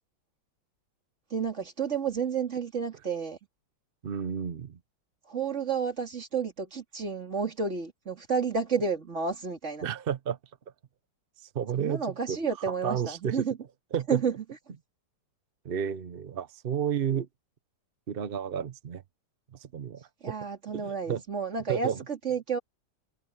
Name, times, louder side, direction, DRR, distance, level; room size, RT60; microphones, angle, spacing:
voice 1, 1.3-3.4 5.3-9.8 11.8-13.6 14.1-14.3 20.2-22.6, right 5 dB, 35° right, 2.8 m, -31 dB
voice 2, 4.0-4.8 9.8-10.4 11.4-12.4 12.8-13.5 13.9-14.2 15.6-17.3 18.1-19.0 19.6-20.4 20.7-21.2 21.7-22.0, right 8 dB, 65° right, 0.5 m, -31 dB
omnidirectional pair, 2.2 m